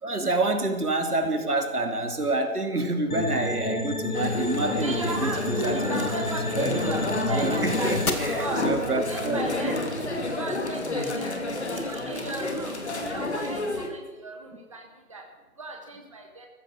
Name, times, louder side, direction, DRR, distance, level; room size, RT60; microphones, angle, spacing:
voice 1, 0.0-6.1 6.5-6.9 7.3-9.7 11.7-11.8, right 2 dB, 90° right, 4 dB, 3.0 m, -28 dB
sound 1, 3.1-8.1, left 3 dB, 75° left, 2.3 m, -30 dB
sound 2, 4.1-13.9, left 2 dB, 50° left, 2.3 m, -30 dB
Insect, 4.5-10.3, right 3 dB, 50° right, 4.6 m, -42 dB
voice 2, 4.8-8.6 8.9-9.7 10.3-15.2 15.6-16.5, right 2 dB, 20° right, 1 dB, 1.3 m, -36 dB
15.0 x 14.0 x 6.3 m, 1.1 s
figure-of-eight pair, 170°, 44 cm